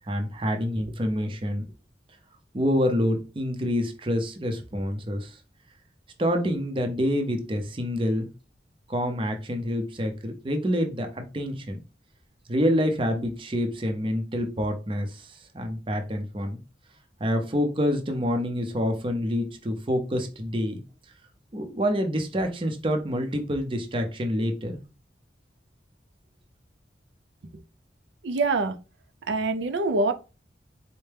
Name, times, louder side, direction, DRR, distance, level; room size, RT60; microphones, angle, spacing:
voice 1, 0.1-1.7 2.5-5.4 6.2-8.3 8.9-11.8 12.5-16.6 17.2-20.8 21.5-24.8, equal, 30° right, 0.5 m, -27 dB
voice 2, 28.2-28.7 29.3-30.1, right 3 dB, 80° right, 0.5 m, -24 dB
4.4 x 2.1 x 3.3 m
head